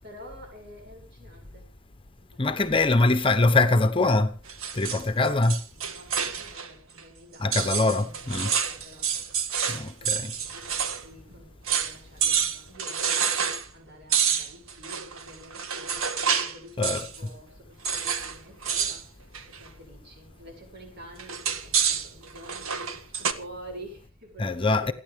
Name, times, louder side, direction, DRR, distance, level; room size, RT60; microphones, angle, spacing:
voice 1, 0.0-1.7 2.2-2.9 5.7-7.5 7.8-8.3 8.6-9.1 9.7-24.9, equal, 55° right, 7.4 m, -48 dB
voice 2, 2.4-4.3 4.7-5.6 7.4-8.6 9.7-10.3 16.8-17.0 24.4-24.9, left 2 dB, 25° left, 1.0 m, -23 dB
sound 1, 4.5-6.7 7.0-7.1 7.5-11.0 11.3-11.4 11.7-12.0 12.2-13.7 14.1-16.6 16.8-17.2 17.8-18.4 18.6-19.0 19.3-19.7 21.2-23.3, right 7 dB, 90° right, 1.7 m, -28 dB
28.5 x 10.0 x 3.7 m
head